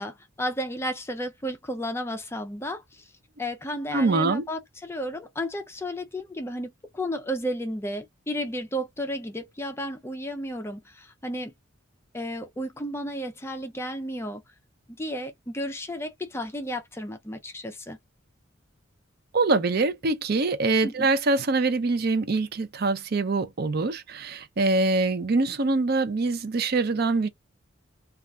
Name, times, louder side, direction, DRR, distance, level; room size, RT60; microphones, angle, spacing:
voice 1, 0.0-3.0 3.4-11.5 12.1-14.4 15.0-18.0 20.8-21.1, equal, 15° left, 0.4 m, -33 dB
voice 2, 3.9-4.4 19.3-27.3, right 3 dB, 50° right, 0.5 m, -24 dB
2.3 x 2.0 x 3.5 m
head